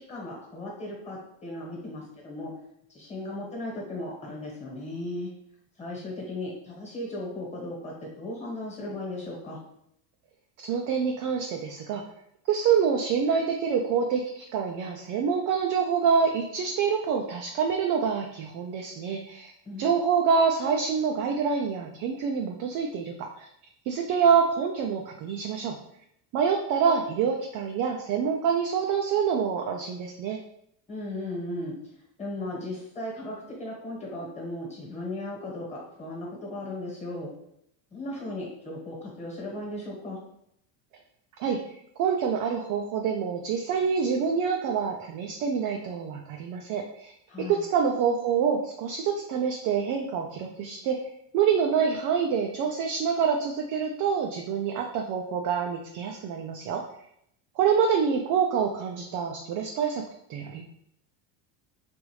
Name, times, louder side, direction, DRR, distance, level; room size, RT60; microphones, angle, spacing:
voice 1, 0.1-2.5 2.9-5.3 5.8-9.6 19.6-19.9 30.9-31.7 32.2-37.3 37.9-40.2 47.3-47.6, left 1 dB, 15° left, -3 dB, 1.3 m, -36 dB
voice 2, 10.6-12.0 12.5-19.5 19.8-23.4 23.9-25.7 26.3-30.4 41.4-41.6 42.0-47.1 47.4-51.0 51.3-56.8 57.6-60.0 60.3-60.6, right 6 dB, 45° right, 2 dB, 0.4 m, -26 dB
4.8 x 2.6 x 3.1 m, 0.74 s
cardioid pair, 150°, 48 cm